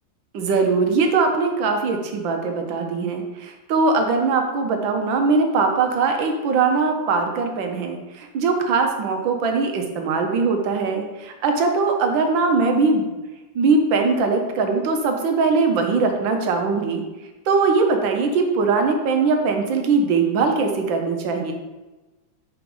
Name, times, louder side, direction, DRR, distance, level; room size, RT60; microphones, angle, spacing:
voice 1, 0.3-13.0 13.5-17.0 17.5-21.5, right 4 dB, 80° right, 4 dB, 1.6 m, -21 dB
4.8 x 4.6 x 5.3 m, 1.1 s
omnidirectional pair, 2.1 m